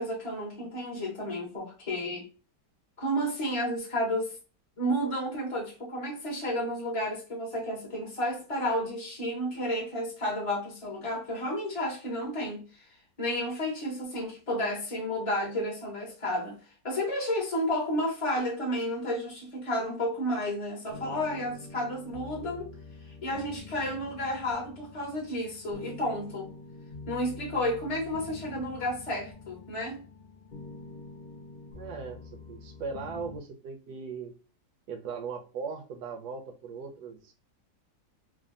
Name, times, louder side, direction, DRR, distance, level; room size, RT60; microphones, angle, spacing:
voice 1, 0.0-2.2 3.0-4.3 4.8-12.6 13.2-16.6 16.8-22.7 23.2-26.5 27.1-30.0, equal, 25° left, 0.8 m, -31 dB
sound 1, 20.8-33.4, left 3 dB, 75° left, 0.4 m, -46 dB
voice 2, 31.7-32.2 32.5-34.3 34.9-37.3, right 5 dB, 70° right, 1.2 m, -38 dB
3.3 x 2.2 x 2.5 m
omnidirectional pair, 1.8 m